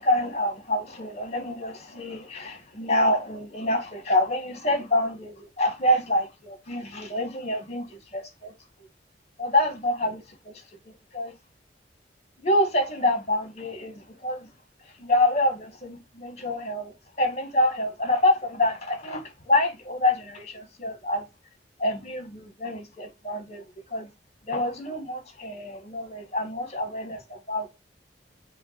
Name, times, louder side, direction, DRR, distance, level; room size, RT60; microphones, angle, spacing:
voice 1, 0.0-8.5 8.8-8.9 9.4-10.5 10.8-11.3 12.4-14.5 15.0-21.2 21.8-23.6 23.9-24.1 24.5-27.7, left 1 dB, 40° left, 1.3 m, -27 dB
5.1 x 2.3 x 4.3 m
head